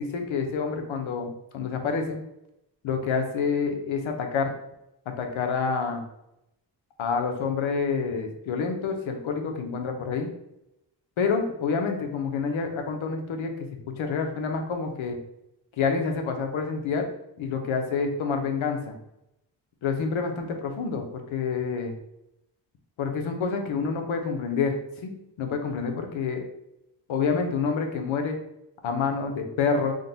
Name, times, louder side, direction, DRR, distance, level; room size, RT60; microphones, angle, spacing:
voice 1, 0.0-2.2 2.8-4.5 5.2-6.0 7.0-10.3 11.2-13.5 14.0-15.2 15.8-17.0 17.4-18.9 19.8-21.9 23.0-25.1 25.4-26.4 27.1-28.4 28.8-29.9, left 5 dB, 85° left, 4 dB, 0.8 m, -28 dB
3.8 x 2.2 x 3.9 m, 0.84 s
wide cardioid pair, 105°, 46 cm